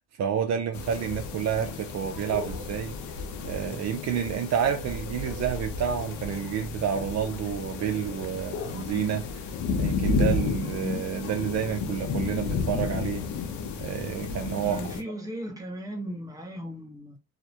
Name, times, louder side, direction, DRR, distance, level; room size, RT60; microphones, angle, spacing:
voice 1, 0.2-3.0 3.4-9.5 9.8-13.2 13.8-14.9, right 8 dB, 60° right, 0.5 m, -29 dB
sound 1, 0.7-15.0, left 4 dB, 70° left, 0.5 m, -32 dB
voice 2, 14.6-17.2, equal, 10° right, 0.8 m, -37 dB
2.2 x 2.0 x 2.7 m
cardioid pair, 90°, 30 cm